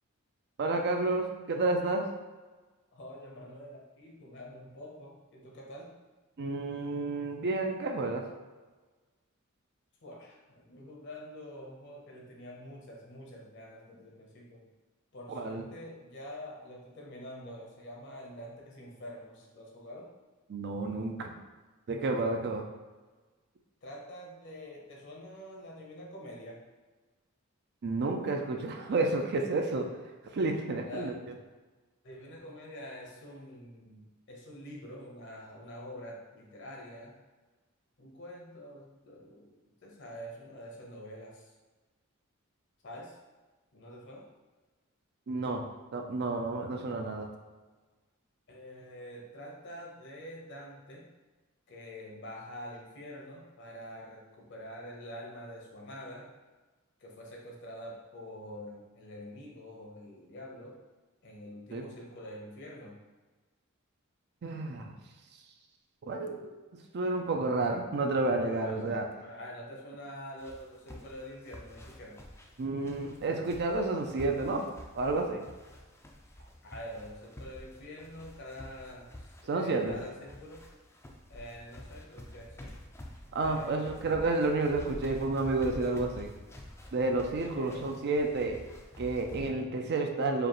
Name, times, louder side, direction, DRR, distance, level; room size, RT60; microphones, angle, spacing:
voice 1, 0.6-2.1 6.4-8.2 15.3-15.7 20.5-21.3 21.9-22.7 27.8-29.9 30.3-31.1 45.3-45.6 45.9-47.3 61.7-61.9 64.4-64.9 66.0-66.6 66.9-69.1 72.6-74.6 75.0-75.5 79.5-80.0 83.3-86.3 86.9-88.6 89.0-90.5, right 2 dB, 50° right, 3 dB, 0.4 m, -30 dB
voice 2, 2.9-5.9 10.0-14.7 15.1-20.1 23.8-26.6 30.8-31.1 32.0-37.2 38.0-41.5 42.8-43.2 43.7-44.2 48.5-51.1 51.7-56.3 57.0-60.8 61.2-63.0 68.6-72.2 76.6-80.7 81.3-82.7 83.4-84.3 87.6-87.9, equal, 60° left, -1 dB, 0.9 m, -46 dB
sound 1, 70.4-89.5, left 1 dB, 15° left, 0.4 m, -48 dB
4.9 x 2.5 x 3.0 m, 1.3 s
head